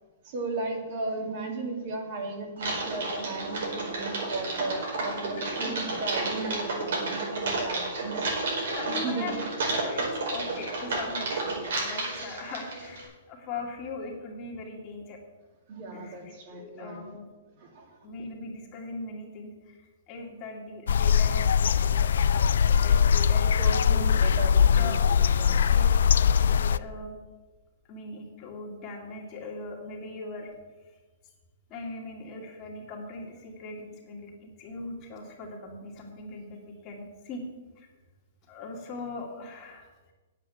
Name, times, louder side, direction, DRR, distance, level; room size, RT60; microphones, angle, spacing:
voice 1, 0.2-8.6 9.0-9.5 15.7-17.1 17.6-18.0 23.6-24.9 25.3-25.7, right 3 dB, 45° right, 2 dB, 2.4 m, -35 dB
Typing, 2.6-13.0, right 2 dB, 75° right, 4.7 m, -31 dB
voice 2, 5.3-5.9 8.7-15.2 15.9-17.2 18.0-24.1 24.7-25.0 25.7-27.2 27.9-30.5 31.7-37.4 37.8-37.9 38.5-39.9, left 3 dB, 30° left, 0 dB, 2.3 m, -40 dB
sound 1, 20.9-26.8, left 7 dB, 80° left, 0.3 m, -21 dB
9.3 x 8.2 x 7.1 m, 1.3 s
hypercardioid pair, 155°, 0 cm